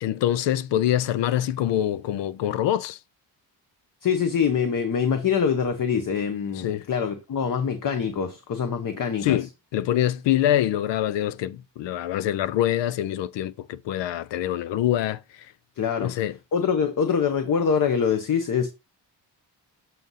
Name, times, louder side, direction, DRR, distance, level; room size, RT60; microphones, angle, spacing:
voice 1, 0.0-3.0 6.6-6.8 9.2-9.5 9.7-15.2 16.0-16.3, left 12 dB, 90° left, 0.5 m, -25 dB
voice 2, 4.0-9.4 15.8-16.1 16.5-18.7, left 7 dB, 50° left, 0.8 m, -24 dB
7.6 x 2.7 x 5.5 m
cardioid pair, 120°, 42 cm